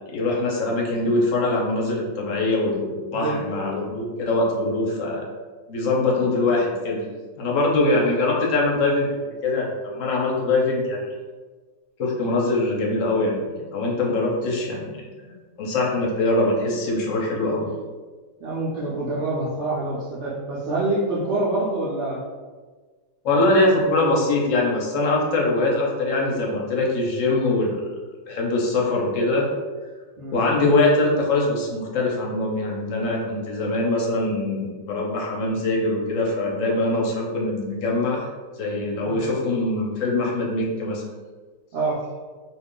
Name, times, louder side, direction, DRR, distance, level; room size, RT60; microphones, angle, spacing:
voice 1, 0.1-5.2 5.7-7.0 7.4-9.2 9.4-11.0 12.0-14.9 15.6-17.7 23.2-27.8 28.3-29.5 30.3-38.2 38.6-41.0, left 2 dB, 65° left, -2 dB, 0.9 m, -23 dB
voice 2, 3.1-3.6 7.6-7.9 18.4-22.2 30.2-30.4 39.0-39.2 41.7-42.0, right 2 dB, 70° right, -6 dB, 0.6 m, -26 dB
2.5 x 2.3 x 3.6 m, 1.4 s
omnidirectional pair, 1.7 m